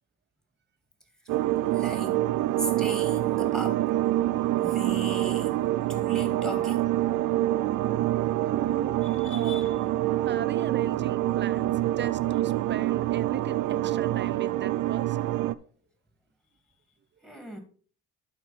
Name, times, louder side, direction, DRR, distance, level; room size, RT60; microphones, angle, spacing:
sound 1, 1.3-15.5, right 15 dB, 85° right, 0.6 m, -26 dB
voice 1, 1.7-2.3 2.6-3.9 4.6-5.6 5.9-6.9 7.9-8.0 9.0-9.8 17.2-17.6, equal, ahead, 2.4 m, -38 dB
voice 2, 8.4-9.0 9.3-9.6 10.3-15.3, right 7 dB, 35° right, 0.7 m, -38 dB
11.5 x 4.6 x 4.2 m
cardioid pair, 90°, 30 cm